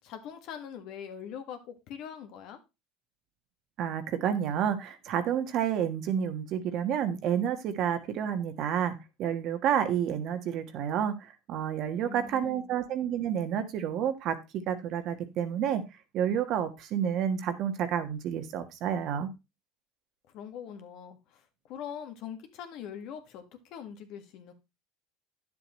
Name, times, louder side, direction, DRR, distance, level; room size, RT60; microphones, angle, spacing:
voice 1, 0.0-2.6 12.0-12.8 20.3-24.5, left 8 dB, 60° left, 7 dB, 1.7 m, -42 dB
voice 2, 3.8-11.1 11.5-14.3 14.7-15.8 16.1-19.3, right 9 dB, 55° right, 8 dB, 1.4 m, -29 dB
9.9 x 7.3 x 3.1 m, 0.24 s
supercardioid pair, 110°, 0 cm